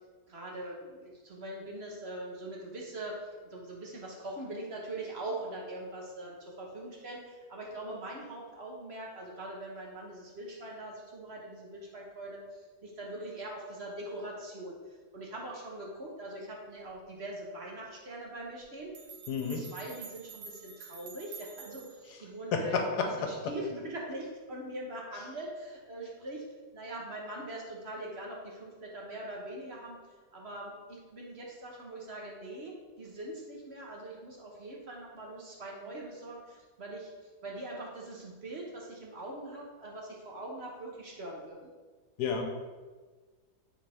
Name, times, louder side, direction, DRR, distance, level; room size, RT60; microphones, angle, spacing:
voice 1, 0.3-18.9 19.4-26.4 26.7-30.0 30.3-41.7, right 1 dB, 45° right, -2 dB, 1.1 m, -42 dB
sound 1, 18.6-18.7 18.9-22.1, right 6 dB, 75° right, 1.5 m, -48 dB
voice 2, 19.3-19.6 22.5-23.5 42.2-42.5, left 5 dB, 70° left, 3 dB, 1.3 m, -31 dB
9.1 x 3.7 x 3.5 m, 1.4 s
omnidirectional pair, 1.9 m